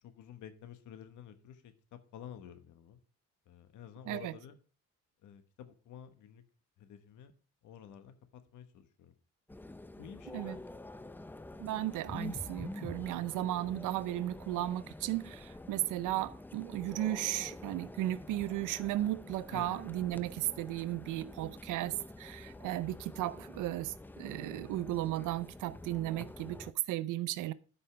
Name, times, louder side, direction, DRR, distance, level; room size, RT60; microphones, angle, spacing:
voice 1, 0.0-3.0 3.5-4.6 5.2-6.4 6.8-7.3 7.6-9.1 10.0-10.8 19.5-19.8, left 9 dB, 85° left, 1.2 m, -51 dB
sound 1, 9.5-26.7, left 2 dB, 5° left, 0.4 m, -47 dB
voice 2, 11.6-27.5, right 15 dB, 90° right, 0.6 m, -35 dB
13.0 x 5.5 x 3.3 m
cardioid pair, 90°, 30 cm